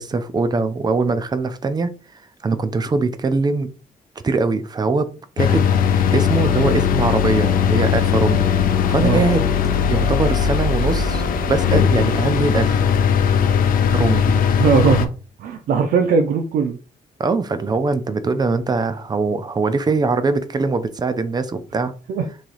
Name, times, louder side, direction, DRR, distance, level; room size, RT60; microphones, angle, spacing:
voice 1, 0.0-1.9 2.4-3.7 4.2-5.7 6.1-9.5 9.9-12.8 13.9-14.4 17.2-22.0, right 3 dB, 30° right, 0.5 m, -22 dB
sound 1, 5.4-15.1, left 7 dB, 80° left, 0.5 m, -18 dB
voice 2, 14.6-15.1 15.4-16.8 22.1-22.3, right 5 dB, 85° right, 0.5 m, -19 dB
3.2 x 2.8 x 3.9 m
cardioid pair, 95°, 14 cm